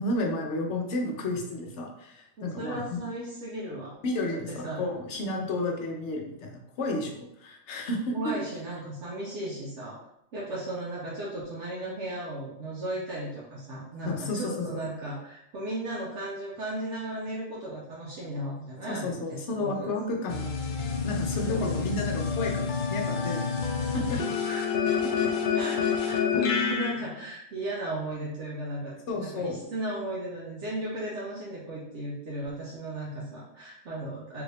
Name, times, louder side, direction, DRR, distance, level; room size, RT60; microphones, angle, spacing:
voice 1, 0.0-3.0 4.0-8.3 14.0-14.8 18.9-23.7 23.9-24.2 29.1-29.6, left 2 dB, 60° left, 1 dB, 0.9 m, -32 dB
voice 2, 2.4-3.9 4.5-4.9 8.1-10.0 10.3-19.9 21.4-21.7 24.4-24.7 25.0-25.2 25.5-34.4, right 1 dB, 65° right, -6 dB, 1.0 m, -36 dB
sound 1, 20.3-26.9, left 6 dB, 80° left, 0.4 m, -28 dB
3.4 x 2.6 x 3.3 m, 0.81 s
omnidirectional pair, 1.4 m